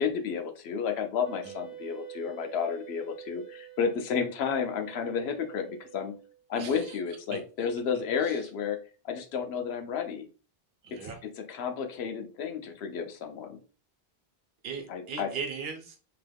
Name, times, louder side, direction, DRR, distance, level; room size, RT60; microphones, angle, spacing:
voice 1, 0.0-6.1 6.5-8.8 9.0-10.3 11.5-13.6 14.9-15.3, left 6 dB, 90° left, 7 dB, 0.8 m, -31 dB
Wind instrument woodwind instrument, 1.2-6.4, right 11 dB, 40° left, 0.8 m, -47 dB
voice 2, 6.6-7.0 7.3-7.4 8.2-8.5 10.8-11.2 14.6-16.0, right 5 dB, 75° right, 3 dB, 0.9 m, -38 dB
3.4 x 2.9 x 2.2 m, 0.37 s
omnidirectional pair, 1.0 m